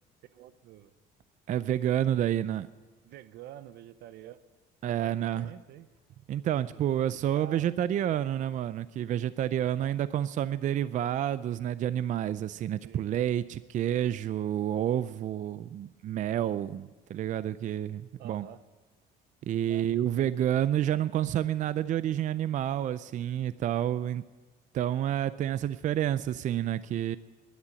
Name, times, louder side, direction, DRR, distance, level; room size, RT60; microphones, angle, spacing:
voice 1, 0.3-0.9 3.0-4.4 5.0-5.9 6.7-6.8 7.1-7.7 12.8-13.1 18.2-18.6 19.7-19.9, right 12 dB, 75° right, 15 dB, 0.7 m, -48 dB
voice 2, 1.5-2.7 4.8-5.5 6.3-18.5 19.4-24.2 24.7-27.2, right 11 dB, 50° right, 16 dB, 0.4 m, -29 dB
12.5 x 10.5 x 9.7 m, 1.3 s
cardioid pair, 110°, 17 cm